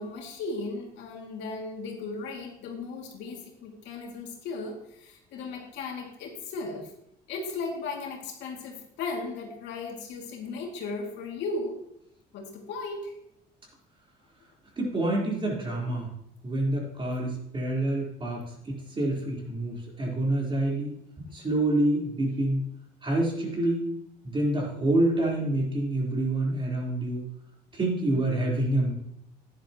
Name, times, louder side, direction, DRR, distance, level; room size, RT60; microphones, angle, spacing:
voice 1, 0.0-6.9 7.3-11.8 12.3-13.2, left 3 dB, 75° left, 0 dB, 2.4 m, -36 dB
voice 2, 14.8-16.1 16.4-18.4 19.0-20.9 21.2-22.6 23.0-23.8 24.2-27.2 27.7-28.9, right 1 dB, 25° right, -3 dB, 3.9 m, -27 dB
10.5 x 10.5 x 3.0 m, 0.77 s
cardioid pair, 100°, 19 cm